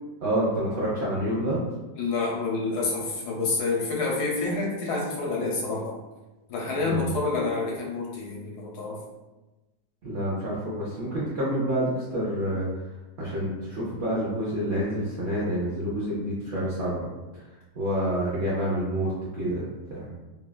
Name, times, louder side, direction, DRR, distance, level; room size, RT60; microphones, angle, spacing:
voice 1, 0.2-1.6 6.8-7.1 10.0-12.7 13.2-17.0 17.3-17.4 17.7-20.1, right 1 dB, 65° right, -8 dB, 0.6 m, -28 dB
voice 2, 2.0-5.9 6.5-9.0, left 3 dB, 75° left, -2 dB, 1.2 m, -28 dB
3.3 x 2.3 x 2.2 m, 1.1 s
omnidirectional pair, 1.8 m